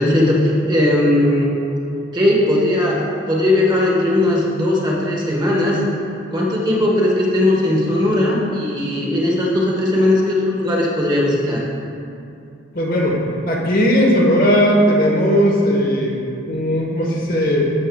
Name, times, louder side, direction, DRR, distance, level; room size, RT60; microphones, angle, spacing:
voice 1, 0.0-1.5 1.9-5.8 6.3-11.6, left 1 dB, 20° right, -3 dB, 1.0 m, -18 dB
voice 2, 12.7-16.1 16.5-17.7, equal, 45° left, -2 dB, 1.0 m, -17 dB
13.5 x 6.4 x 2.3 m, 2.6 s
head